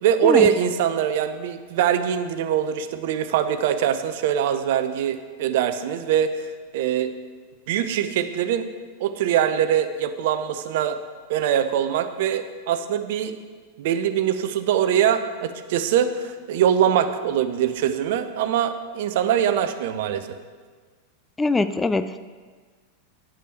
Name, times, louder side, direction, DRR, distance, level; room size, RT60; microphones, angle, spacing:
voice 1, 0.0-6.3 6.7-7.1 7.7-8.7 9.0-11.0 11.3-13.3 13.8-20.3, right 9 dB, 50° right, 11 dB, 0.6 m, -23 dB
voice 2, 21.4-22.2, left 3 dB, 10° left, 11 dB, 0.3 m, -22 dB
10.0 x 8.2 x 4.4 m, 1.5 s
figure-of-eight pair, 90°, 0 cm